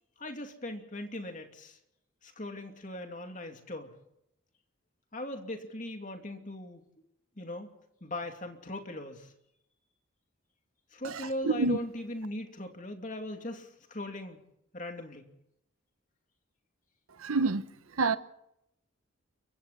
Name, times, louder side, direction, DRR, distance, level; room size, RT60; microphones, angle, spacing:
voice 1, 0.2-1.8 2.2-3.9 5.1-6.8 7.4-7.7 8.0-9.3 10.9-14.4 14.7-15.3, left 1 dB, 35° left, 2.7 m, -39 dB
voice 2, 11.0-11.8 17.2-17.6 18.0-18.2, right 3 dB, 90° right, 1.0 m, -28 dB
29.0 x 24.0 x 4.3 m
head